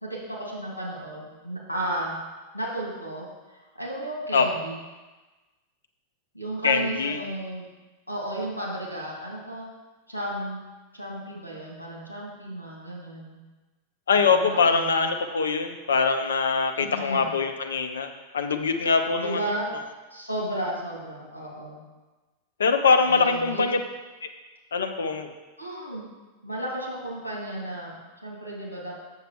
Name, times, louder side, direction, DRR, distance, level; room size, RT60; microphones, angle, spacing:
voice 1, 0.0-2.2 2.5-3.3 3.5-4.8 6.3-7.7 8.1-9.7 10.1-10.6 10.9-13.4 14.1-15.1 16.8-17.3 19.2-19.7 20.1-21.8 23.0-23.8 25.6-26.1 26.4-29.0, right 1 dB, 90° right, -3 dB, 2.4 m, -33 dB
voice 2, 6.6-7.2 14.1-18.1 18.3-19.6 22.6-23.8 24.7-25.3, left 5 dB, 70° left, 7 dB, 0.7 m, -23 dB
7.4 x 6.7 x 4.8 m, 1.2 s
figure-of-eight pair, 90°, 0 cm